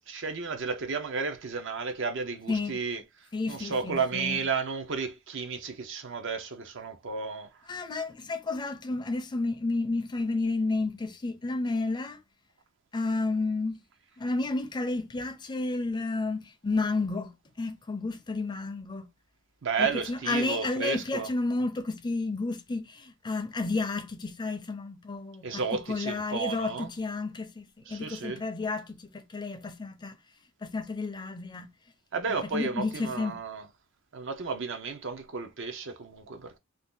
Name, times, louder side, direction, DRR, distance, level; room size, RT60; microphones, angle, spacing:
voice 1, 0.1-3.0 3.5-7.5 19.6-21.3 25.4-26.9 27.9-28.4 32.1-33.7 34.1-36.6, right 5 dB, 65° right, 0.6 m, -32 dB
voice 2, 2.5-2.8 3.3-4.4 7.7-12.2 12.9-13.8 14.2-17.3 17.6-19.1 19.8-30.2 30.6-31.7 32.3-33.4, left 3 dB, 20° left, 0.4 m, -31 dB
2.6 x 2.3 x 3.5 m
head